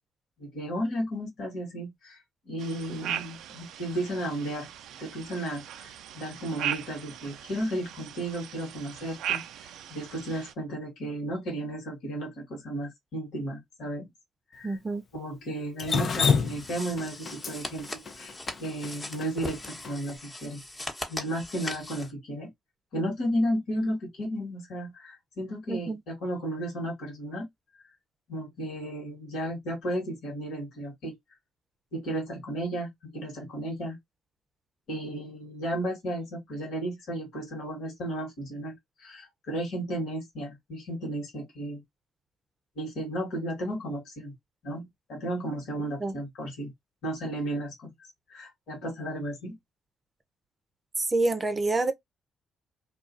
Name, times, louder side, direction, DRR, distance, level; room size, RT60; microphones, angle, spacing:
voice 1, 0.4-4.7 5.0-14.1 14.5-14.8 15.1-20.6 21.1-22.5 22.9-27.5 28.3-31.2 31.9-34.0 34.9-41.8 42.7-44.3 44.6-46.7 47.0-47.9 48.3-49.6, right 1 dB, 75° left, 1.4 m, -34 dB
sound 1, 2.6-10.5, right 10 dB, 75° right, 0.3 m, -38 dB
voice 2, 14.6-15.0 25.7-26.0 46.0-46.1 51.0-51.9, right 2 dB, 30° right, 0.6 m, -27 dB
Drip, 15.8-19.9, left 5 dB, 50° left, 0.5 m, -28 dB
sound 2, 16.2-22.1, left 1 dB, 20° left, 0.9 m, -40 dB
2.3 x 2.3 x 2.5 m
supercardioid pair, 55°, 0 cm